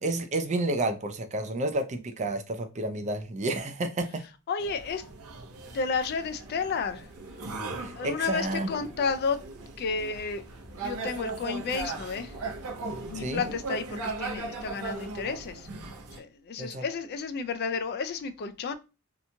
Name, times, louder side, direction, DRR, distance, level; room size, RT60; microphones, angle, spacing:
voice 1, 0.0-4.3 7.8-8.7 13.1-13.4 16.6-16.8, right 2 dB, 35° right, 0.4 m, -30 dB
voice 2, 4.5-5.0 5.7-7.1 7.9-9.4 9.8-10.4 10.8-12.4 13.1-15.7 16.1-18.8, left 5 dB, 45° left, 0.3 m, -31 dB
sound 1, 4.6-16.2, right 3 dB, 75° right, 0.6 m, -38 dB
2.9 x 2.2 x 2.6 m
head